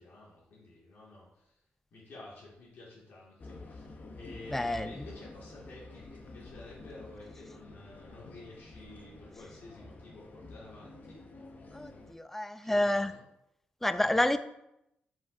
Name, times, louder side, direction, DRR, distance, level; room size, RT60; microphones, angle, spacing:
voice 1, 0.0-1.6 1.9-3.9 4.1-11.2 12.6-13.2, left 2 dB, 65° left, -6 dB, 2.0 m, -51 dB
sound 1, 3.4-12.1, left 2 dB, 45° left, 0.8 m, -49 dB
voice 2, 4.5-5.1 11.7-13.1 13.8-14.4, left 1 dB, 5° left, 12 dB, 0.4 m, -29 dB
7.3 x 4.9 x 2.6 m, 0.83 s
cardioid pair, 80°, 4 cm